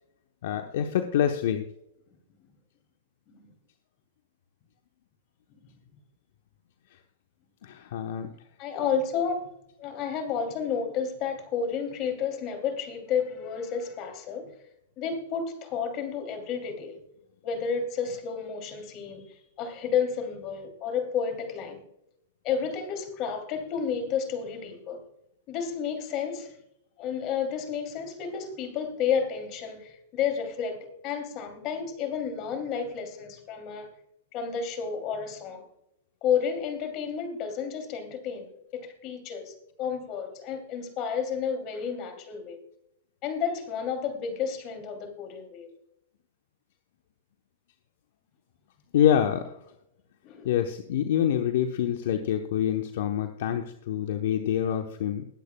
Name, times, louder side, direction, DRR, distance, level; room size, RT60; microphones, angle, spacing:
voice 1, 0.4-1.7 7.6-8.3 48.9-49.5 50.4-55.3, left 10 dB, 65° left, 6 dB, 0.9 m, -26 dB
voice 2, 8.6-9.5 9.8-14.5 15.0-17.0 17.4-19.2 19.6-21.8 22.4-25.0 25.5-26.5 27.0-33.9 34.3-35.7 36.2-42.6 43.2-45.7 50.2-50.5, left 7 dB, 40° left, 6 dB, 2.8 m, -31 dB
20.5 x 8.3 x 2.3 m, 0.80 s
hypercardioid pair, 120°, 0 cm